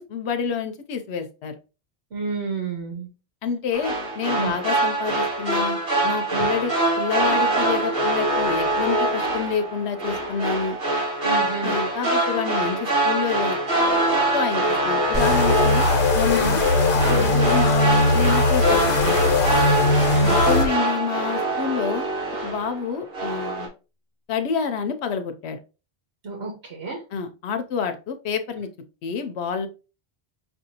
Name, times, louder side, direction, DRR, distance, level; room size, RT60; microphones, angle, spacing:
voice 1, 0.0-1.6 3.4-5.8 6.0-10.8 11.6-13.6 14.3-15.8 16.1-16.6 17.0-19.6 20.4-22.0 22.4-23.7 24.3-25.6 27.1-28.7 29.0-29.7, left 6 dB, 80° left, 7 dB, 0.9 m, -28 dB
voice 2, 2.1-3.1 4.4-4.5 6.3-6.4 11.2-11.7 16.3-16.5 17.1-17.3 20.1-20.4 26.2-27.0, right 4 dB, 80° right, 0 dB, 1.4 m, -30 dB
sound 1, 3.7-22.8 23.1-23.7, right 2 dB, 60° right, 1.9 m, -24 dB
sound 2, 15.1-20.7, left 2 dB, 55° left, 1.1 m, -19 dB
5.9 x 2.6 x 2.7 m, 0.31 s
omnidirectional pair, 1.1 m